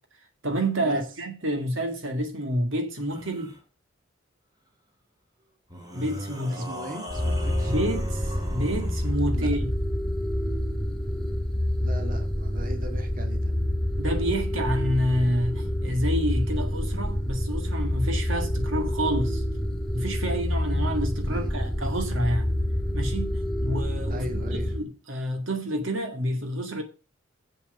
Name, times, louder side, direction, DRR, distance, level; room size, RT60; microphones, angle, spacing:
voice 1, 0.4-3.5 5.9-6.6 7.7-9.7 14.0-19.4 19.9-22.5 22.9-24.3 24.7-26.8, equal, 70° right, 2.1 m, -28 dB
sound 1, 3.1-3.6 5.7-9.2, equal, 20° right, 2.5 m, -39 dB
voice 2, 6.5-7.7 9.3-9.5 11.8-13.6 21.2-21.5 24.1-24.8, equal, 40° right, 2.0 m, -39 dB
sound 2, 7.1-24.8, left 1 dB, ahead, 2.3 m, -27 dB
7.8 x 7.3 x 7.0 m
head